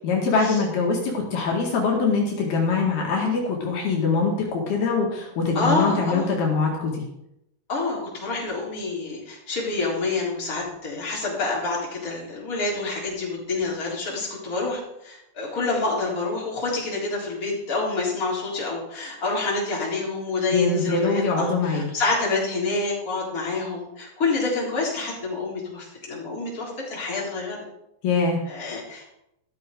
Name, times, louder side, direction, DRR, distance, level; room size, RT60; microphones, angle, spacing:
voice 1, 0.0-7.0 20.5-21.8 28.0-28.4, left 4 dB, 70° left, -1 dB, 3.8 m, -23 dB
voice 2, 5.5-6.3 7.7-27.6 28.5-29.1, left 3 dB, 20° left, -4 dB, 3.8 m, -27 dB
13.5 x 13.0 x 3.8 m, 0.81 s
omnidirectional pair, 4.7 m